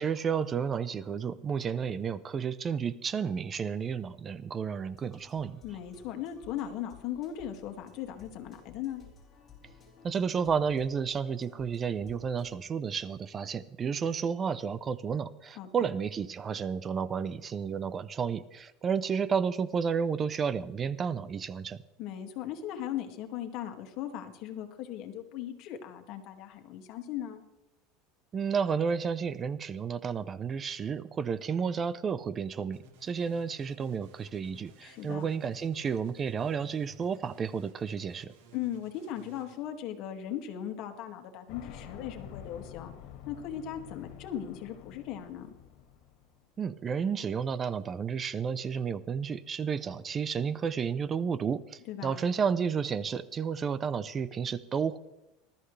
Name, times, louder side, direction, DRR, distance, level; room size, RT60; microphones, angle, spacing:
voice 1, 0.0-5.6 10.0-21.8 28.3-38.3 46.6-55.0, right 6 dB, 25° right, 16 dB, 0.6 m, -31 dB
sound 1, 4.9-12.5, left 4 dB, 25° left, 4.7 m, -56 dB
voice 2, 5.6-9.0 15.6-15.7 22.0-27.4 34.8-35.3 38.5-42.9 43.3-45.5 51.9-52.2, left 10 dB, 55° left, 5 dB, 2.1 m, -38 dB
sound 2, 32.7-39.6, right 2 dB, 85° right, 3.4 m, -57 dB
sound 3, 41.5-46.5, left 9 dB, 70° left, 2.3 m, -48 dB
20.5 x 13.5 x 3.3 m, 0.94 s
supercardioid pair, 140°, 0 cm